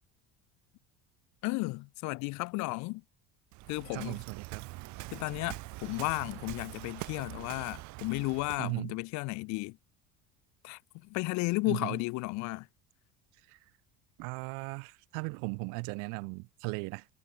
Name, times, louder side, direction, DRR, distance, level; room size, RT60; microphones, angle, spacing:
voice 1, 1.4-3.0 3.7-4.2 5.1-9.8 10.6-12.7, left 25 dB, 65° left, 1.2 m, -34 dB
Waves surf, 3.5-8.8, right 22 dB, 65° right, 4.8 m, -44 dB
voice 2, 3.9-4.7 8.6-8.9 11.6-12.0 13.5-13.6 14.2-17.1, right 40 dB or more, 85° right, 1.3 m, -37 dB
cardioid pair, 165°, 31 cm